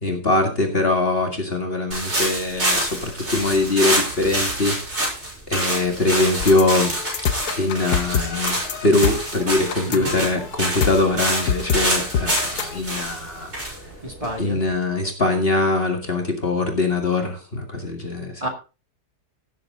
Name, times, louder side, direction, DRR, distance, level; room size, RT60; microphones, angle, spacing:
voice 1, 0.0-4.8 5.5-6.9 7.6-13.5 14.4-18.4, left 2 dB, 35° left, 3 dB, 2.1 m, -22 dB
sound 1, 1.9-14.7, right 1 dB, 40° right, 5.5 m, -26 dB
sound 2, 6.4-12.8, left 7 dB, 65° left, 1.5 m, -27 dB
voice 2, 14.0-14.6 18.4-18.5, right 1 dB, 20° right, 1 dB, 2.0 m, -29 dB
16.5 x 7.3 x 3.8 m, 0.32 s
omnidirectional pair, 1.8 m